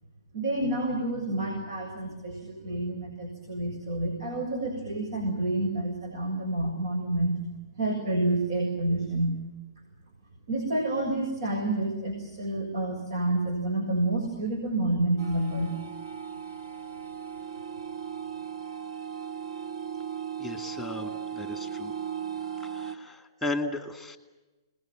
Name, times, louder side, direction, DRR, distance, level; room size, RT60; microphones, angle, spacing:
voice 1, 0.3-7.3 7.8-9.4 10.5-15.7, right 2 dB, 75° right, 4 dB, 6.9 m, -29 dB
sound 1, 15.2-23.0, right 8 dB, 55° right, 2.1 m, -37 dB
voice 2, 20.4-21.9 22.6-24.2, left 2 dB, 5° right, 7 dB, 2.3 m, -35 dB
29.5 x 21.0 x 7.7 m, 1.1 s
hypercardioid pair, 160°, 2 cm